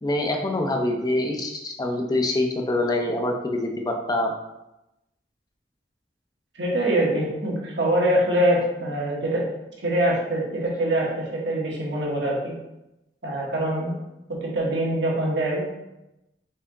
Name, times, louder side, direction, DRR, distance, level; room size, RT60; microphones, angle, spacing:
voice 1, 0.0-4.3, left 1 dB, 20° left, 2 dB, 0.5 m, -25 dB
voice 2, 6.6-9.4 9.8-12.5 13.2-13.9 14.4-15.8, right 1 dB, 75° right, -3 dB, 1.2 m, -24 dB
4.5 x 2.8 x 3.5 m, 0.93 s
head